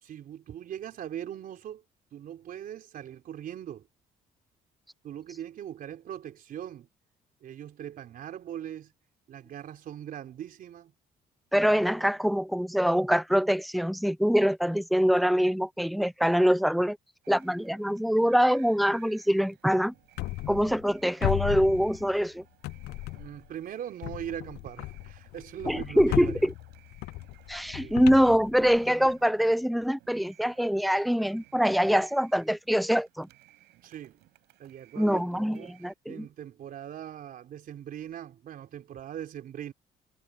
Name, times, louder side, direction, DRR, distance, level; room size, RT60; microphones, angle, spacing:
voice 1, 0.0-1.8 2.1-3.9 5.0-6.9 7.4-8.9 9.3-10.9 23.1-26.5 27.8-27.9 33.8-34.2 34.6-35.7 36.1-39.7, right 10 dB, 60° right, 4.0 m, -40 dB
voice 2, 11.5-17.0 17.3-19.9 20.5-22.4 25.7-26.5 27.5-33.3 35.0-36.3, equal, ahead, 0.5 m, -24 dB
sound 1, 17.2-35.9, right 18 dB, 85° right, 7.6 m, -60 dB
sound 2, 20.2-20.9 21.2-22.3 22.6-23.5 24.0-29.1, left 19 dB, 75° left, 0.4 m, -36 dB
cardioid pair, 110°, 17 cm